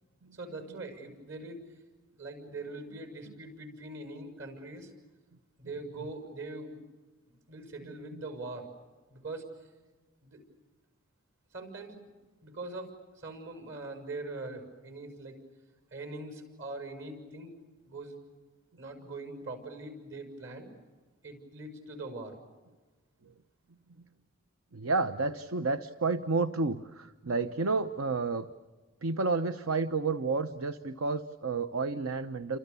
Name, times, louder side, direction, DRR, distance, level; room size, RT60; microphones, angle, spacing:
voice 1, 0.3-1.6 2.2-4.9 5.6-6.8 7.5-8.7 9.1-9.4 10.2-10.4 11.5-11.9 12.4-12.9 13.1-15.4 15.9-17.5 17.8-18.2 18.8-20.7 21.2-22.3, right 2 dB, 65° right, 7 dB, 6.6 m, -42 dB
voice 2, 7.8-8.2 23.3-23.4 24.7-28.5 29.0-32.6, right 3 dB, 80° right, 10 dB, 0.9 m, -31 dB
29.5 x 26.0 x 7.0 m, 1.3 s
head